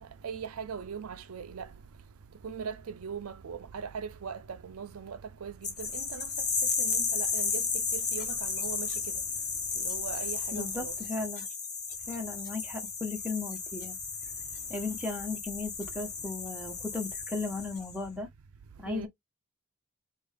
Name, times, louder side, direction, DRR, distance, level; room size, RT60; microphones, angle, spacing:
voice 1, 0.2-1.7 2.4-5.5 5.8-6.3 6.8-7.6 7.9-8.9 9.8-10.9 18.9-19.1, right 6 dB, 75° right, 0.5 m, -40 dB
sound 1, 5.6-18.0, left 5 dB, 35° left, 1.6 m, -34 dB
voice 2, 10.5-11.4 12.1-14.0 14.7-18.3 18.8-19.1, left 3 dB, 5° right, 1.4 m, -36 dB
5.0 x 2.5 x 3.6 m
head